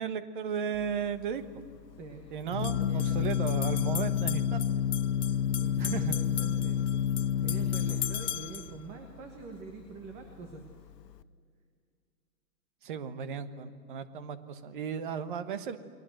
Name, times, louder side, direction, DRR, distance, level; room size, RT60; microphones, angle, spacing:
voice 1, 0.0-1.4 2.3-4.7 5.8-6.1 12.8-15.8, right 7 dB, 30° right, 12 dB, 1.3 m, -35 dB
Organ, 0.7-11.2, left 9 dB, 90° left, 1.0 m, -31 dB
sound 1, 0.8-0.9 2.5-8.7, left 10 dB, 45° left, 0.7 m, -39 dB
voice 2, 2.0-2.3 2.8-3.5 5.4-6.9 7.4-10.6, right 4 dB, 15° right, 4 dB, 1.2 m, -45 dB
30.0 x 22.0 x 7.8 m, 2.1 s
hypercardioid pair, 170°, 48 cm